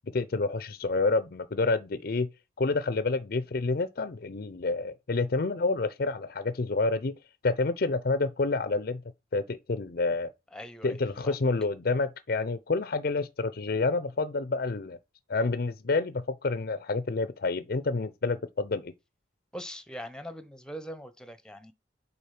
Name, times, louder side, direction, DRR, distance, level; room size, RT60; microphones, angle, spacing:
voice 1, 0.1-2.3 2.6-7.2 7.4-9.0 9.3-10.3 10.8-15.0 15.3-18.9, left 3 dB, 55° left, 0.6 m, -28 dB
voice 2, 10.5-11.4 19.5-21.7, equal, 5° left, 0.9 m, -42 dB
8.5 x 4.0 x 5.8 m
head